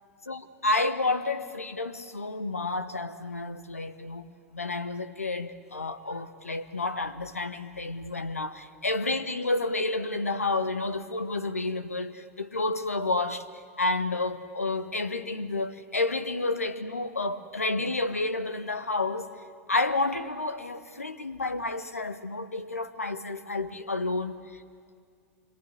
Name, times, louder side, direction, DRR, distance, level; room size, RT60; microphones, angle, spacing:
voice 1, 0.3-13.5 13.8-19.3 19.7-24.6, left 2 dB, 85° left, 11 dB, 1.3 m, -30 dB
26.5 x 22.5 x 9.6 m, 2.2 s
figure-of-eight pair, 90°, 8 cm